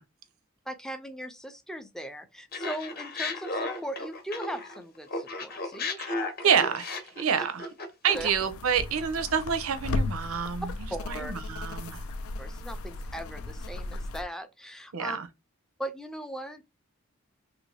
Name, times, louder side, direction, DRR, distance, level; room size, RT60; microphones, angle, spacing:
voice 1, 0.7-6.0 6.4-6.6 8.1-8.3 10.9-11.3 12.4-15.2 15.8-16.7, right 1 dB, ahead, 0.4 m, -39 dB
Laughter, 2.5-4.8 5.1-8.3, left 2 dB, 45° left, 0.8 m, -34 dB
voice 2, 6.4-7.7 8.0-10.7 11.1-12.0 14.9-15.3, right 7 dB, 80° right, 0.6 m, -28 dB
sound 1, 8.1-14.2, left 2 dB, 80° left, 0.4 m, -35 dB
2.9 x 2.6 x 3.2 m
head